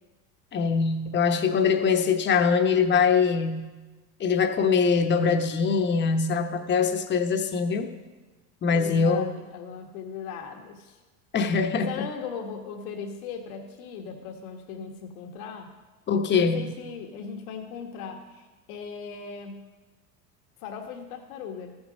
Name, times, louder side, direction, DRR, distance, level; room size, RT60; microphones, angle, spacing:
voice 1, 0.5-3.6 4.2-7.9 8.6-9.3 11.3-11.9 16.1-16.7, left 5 dB, 25° left, 6 dB, 0.9 m, -23 dB
voice 2, 8.7-11.0 11.7-15.7 16.3-19.6 20.6-21.7, left 6 dB, 75° left, 3 dB, 1.5 m, -38 dB
14.0 x 7.1 x 5.3 m, 1.2 s
supercardioid pair, 115°, 43 cm